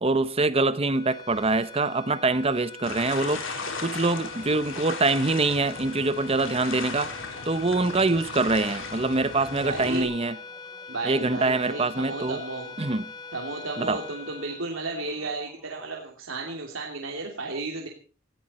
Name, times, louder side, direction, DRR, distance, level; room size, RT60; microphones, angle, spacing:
voice 1, 0.0-3.4 3.8-7.1 7.4-10.3 11.0-12.4 12.8-13.0 13.8-14.0, right 3 dB, 30° right, 1.0 m, -24 dB
sound 1, 0.8-15.4, left 4 dB, 20° left, 1.2 m, -43 dB
sound 2, 2.8-10.0, left 4 dB, 70° left, 4.0 m, -37 dB
sound 3, 3.9-15.9, right 1 dB, 5° right, 5.9 m, -53 dB
voice 2, 9.6-10.1 10.9-12.7 13.3-17.9, right 3 dB, 85° right, 2.9 m, -33 dB
18.5 x 15.5 x 4.4 m
head